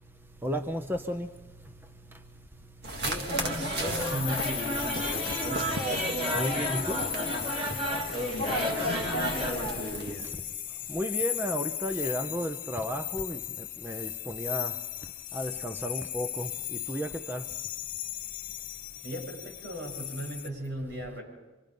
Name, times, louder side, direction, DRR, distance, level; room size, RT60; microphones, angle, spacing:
voice 1, 0.4-1.3 6.3-7.1 8.8-8.9 10.9-14.8 15.3-17.5, equal, 10° right, 0.7 m, -33 dB
sound 1, 2.8-10.1, right 1 dB, 55° right, 2.0 m, -35 dB
voice 2, 3.0-6.0 8.1-10.3 19.0-21.2, equal, 70° right, 7.7 m, -37 dB
sound 2, 3.3-9.5, equal, 30° right, 4.1 m, -33 dB
sound 3, 3.9-20.5, left 12 dB, 45° left, 0.8 m, -37 dB
26.0 x 24.0 x 5.3 m
head